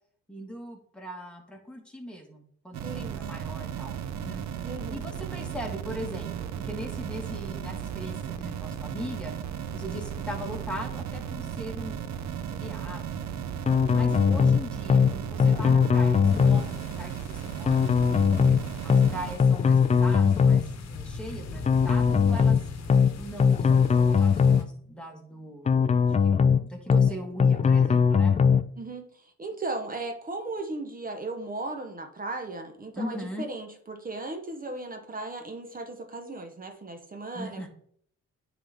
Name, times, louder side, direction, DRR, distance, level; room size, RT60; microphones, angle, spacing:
voice 1, 0.3-9.3 9.7-13.4 13.9-18.5 18.8-22.6 23.1-28.3 33.0-33.5 37.3-37.7, equal, 5° left, 1 dB, 1.8 m, -40 dB
sound 1, 2.7-19.4, right 8 dB, 65° right, 0.7 m, -35 dB
voice 2, 2.8-3.2 4.6-5.0 26.9-27.3 28.8-37.7, right 2 dB, 30° right, 4 dB, 1.1 m, -36 dB
sound 2, 13.7-14.6 14.9-15.1 15.4-16.6 17.7-18.6 18.9-19.1 19.4-20.6 21.7-22.6 22.9-23.1 23.4-24.6 25.7-26.6 26.9-27.1 27.4-28.6, left 6 dB, 25° left, 0.4 m, -20 dB
sound 3, 16.3-24.6, left 3 dB, 60° left, 1.1 m, -41 dB
9.4 x 4.0 x 3.5 m, 0.62 s
cardioid pair, 90°, 30 cm